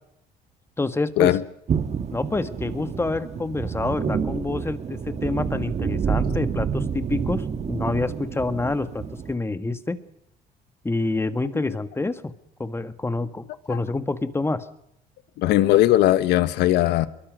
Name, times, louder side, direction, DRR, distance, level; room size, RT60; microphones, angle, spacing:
voice 1, 0.8-1.3 2.1-10.0 10.8-12.3 12.6-14.6, left 2 dB, 15° left, 10 dB, 1.7 m, -27 dB
sound 1, 1.7-9.4, right 6 dB, 40° right, 1.6 m, -28 dB
voice 2, 15.4-17.1, left 14 dB, 85° left, 13 dB, 1.4 m, -19 dB
24.0 x 22.5 x 6.3 m, 0.78 s
cardioid pair, 110°, 17 cm